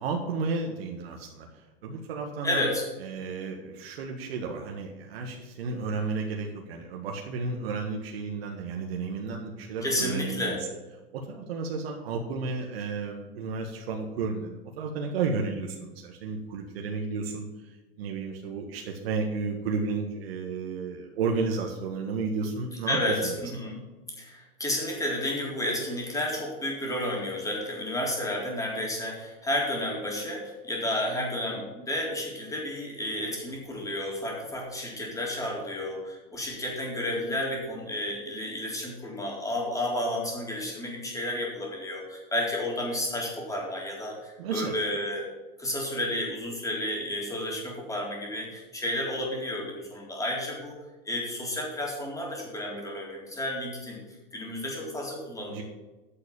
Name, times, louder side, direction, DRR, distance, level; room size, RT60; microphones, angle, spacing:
voice 1, 0.0-2.7 3.0-10.7 11.1-23.4 23.6-23.7 44.4-44.8 55.5-55.6, right 4 dB, 85° right, 1 dB, 1.7 m, -32 dB
voice 2, 2.4-2.8 9.8-10.6 22.9-23.8 24.2-45.3 45.6-50.8 51.0-54.0 54.3-55.6, left 1 dB, 10° left, -2 dB, 3.8 m, -31 dB
9.5 x 6.8 x 7.1 m, 1.2 s
supercardioid pair, 135°, 30 cm